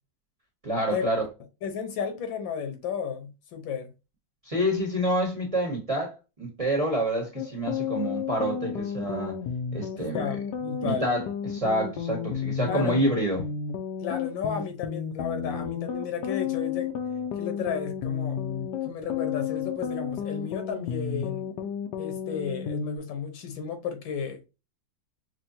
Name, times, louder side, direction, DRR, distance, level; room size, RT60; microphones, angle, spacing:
voice 1, 0.6-1.2 4.4-9.4 9.7-10.3 10.8-13.5, right 1 dB, 25° right, 0.9 m, -28 dB
voice 2, 1.6-3.9 10.0-11.1 12.7-13.1 14.0-16.9 17.4-18.4 18.8-21.5 22.0-24.5, left 7 dB, 90° left, 1.7 m, -33 dB
sound 1, 7.4-23.0, left 7 dB, 75° left, 1.1 m, -32 dB
5.9 x 2.1 x 2.7 m
omnidirectional pair, 2.0 m